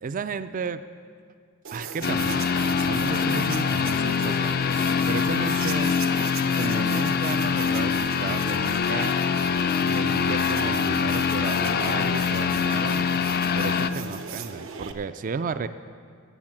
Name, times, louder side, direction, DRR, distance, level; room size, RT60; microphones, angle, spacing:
voice 1, 0.0-0.8 1.7-4.6 5.1-6.0 6.5-9.1 9.8-13.1 13.5-15.7, right 5 dB, 35° right, 12 dB, 0.3 m, -33 dB
sound 1, 1.6-14.9, right 6 dB, 65° right, 0.8 m, -38 dB
sound 2, 2.0-13.9, left 6 dB, 45° left, 0.4 m, -24 dB
15.0 x 7.2 x 7.3 m, 2.1 s
head